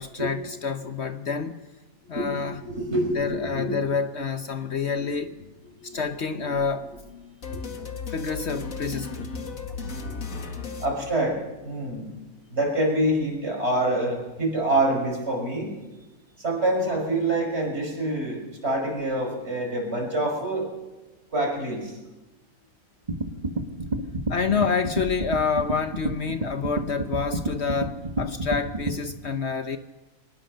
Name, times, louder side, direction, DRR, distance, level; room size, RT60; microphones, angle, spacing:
voice 1, 0.0-1.6 2.1-2.6 3.2-5.5 5.8-7.4 8.1-9.5 24.3-29.8, left 5 dB, 55° left, 1.0 m, -28 dB
voice 2, 2.0-3.8 5.0-5.1 5.8-6.0 6.3-6.6 7.5-7.6 10.8-11.4 11.6-12.1 12.5-15.7 16.4-20.7 21.3-21.9, right 1 dB, 50° right, 5.8 m, -26 dB
sound 1, 7.4-11.7, left 4 dB, 75° left, 2.3 m, -35 dB
sound 2, 23.1-29.0, right 2 dB, 30° right, 1.8 m, -30 dB
23.0 x 20.5 x 6.6 m
omnidirectional pair, 1.5 m